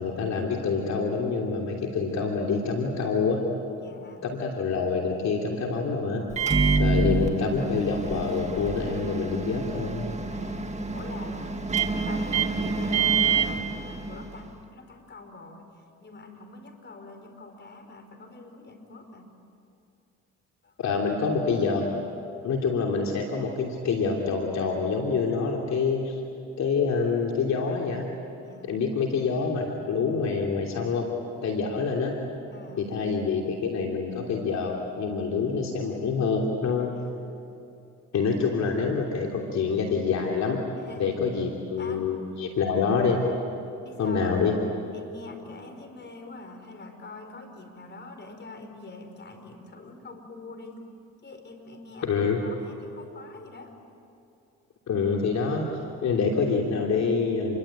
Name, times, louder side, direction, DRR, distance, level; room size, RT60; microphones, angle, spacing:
voice 1, 0.0-3.4 4.2-6.2 6.8-10.1 20.8-21.8 22.4-26.2 26.6-28.0 28.6-31.0 31.4-32.1 32.8-36.9 38.1-40.6 41.0-43.2 44.0-44.5 52.0-52.4 54.9-55.7 56.0-57.6, left 5 dB, 65° left, 1 dB, 3.1 m, -26 dB
voice 2, 3.7-4.2 6.6-7.0 10.3-15.7 16.0-19.2 20.6-20.7 28.4-28.8 32.5-32.9 36.9-37.1 40.8-41.2 41.8-42.1 43.8-44.3 44.9-50.9 51.2-53.7, left 3 dB, 35° left, 6 dB, 5.0 m, -45 dB
Microwave oven, 6.3-14.5, right 4 dB, 25° right, 2.2 m, -27 dB
29.0 x 23.0 x 8.9 m, 2.6 s
supercardioid pair, 75°, 30 cm